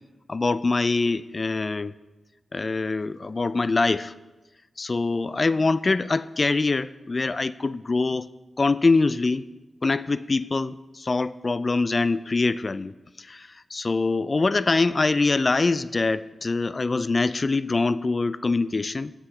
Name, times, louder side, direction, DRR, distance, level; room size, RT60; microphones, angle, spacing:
voice 1, 0.3-1.9 2.5-4.1 4.8-8.3 8.6-9.5 9.8-19.1, left 3 dB, 50° left, 16 dB, 0.3 m, -24 dB
14.0 x 7.8 x 2.9 m, 1.1 s
cardioid pair, 40°, 0 cm